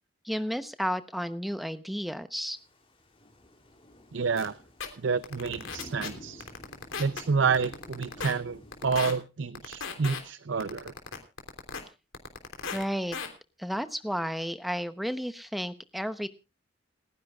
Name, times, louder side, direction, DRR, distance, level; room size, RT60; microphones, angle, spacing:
voice 1, 0.2-2.6 12.7-13.2 13.6-16.3, equal, ahead, 11 dB, 0.8 m, -32 dB
Thunder / Rain, 2.5-9.0, equal, 25° left, 3.1 m, -51 dB
voice 2, 4.1-4.5 5.0-6.5 7.0-10.9, right 5 dB, 65° right, 15 dB, 0.6 m, -29 dB
sound 1, 4.4-4.5 4.8-4.9 5.2-6.1 6.4-7.2 7.5-8.3 8.7-9.1 9.6-10.2 10.6-11.8 12.1-12.8 13.1-13.3, left 5 dB, 80° left, 3.4 m, -35 dB
29.5 x 10.5 x 2.4 m, 0.31 s
head